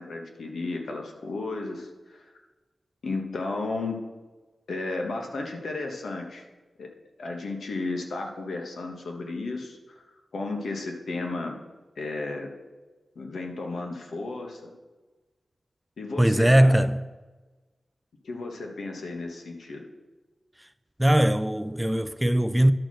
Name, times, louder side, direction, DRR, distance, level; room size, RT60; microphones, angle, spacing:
voice 1, 0.0-2.4 3.0-4.0 4.7-6.5 6.8-6.9 7.2-10.0 10.3-11.6 12.0-12.5 13.1-14.7 16.0-16.9 18.2-19.8, left 3 dB, 90° left, 1.3 m, -33 dB
voice 2, 16.2-17.0 21.0-22.7, right 1 dB, 5° right, 0.3 m, -20 dB
11.5 x 4.3 x 6.2 m
wide cardioid pair, 135°, 0 cm